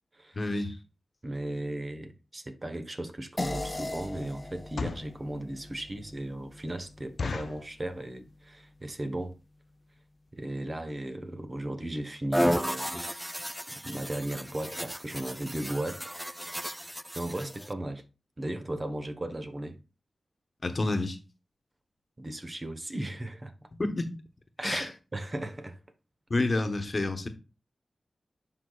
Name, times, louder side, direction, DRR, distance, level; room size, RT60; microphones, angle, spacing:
voice 1, 0.3-0.8 20.6-21.2 23.8-24.1 24.6-24.8 26.3-27.3, left 2 dB, 50° left, 1.1 m, -29 dB
voice 2, 1.2-9.4 10.3-13.0 13.8-16.2 16.7-18.0 18.4-19.8 22.2-23.5 24.6-25.8, right 1 dB, 35° right, 1.0 m, -36 dB
sound 1, 3.0-3.1 3.6-3.8 4.5-5.2 5.7-5.8 6.2-6.3 6.6-6.7 7.2-7.7 8.3-8.6 8.8-8.9 9.2-9.4 10.0-10.1 10.3-10.5 10.8-10.9 11.1-11.2, left 4 dB, 75° left, 0.3 m, -36 dB
sound 2, 3.4-8.1, left 2 dB, 30° left, 0.6 m, -39 dB
sound 3, 12.3-17.7, equal, 5° right, 0.4 m, -33 dB
11.0 x 4.0 x 2.4 m
cardioid pair, 45°, 0 cm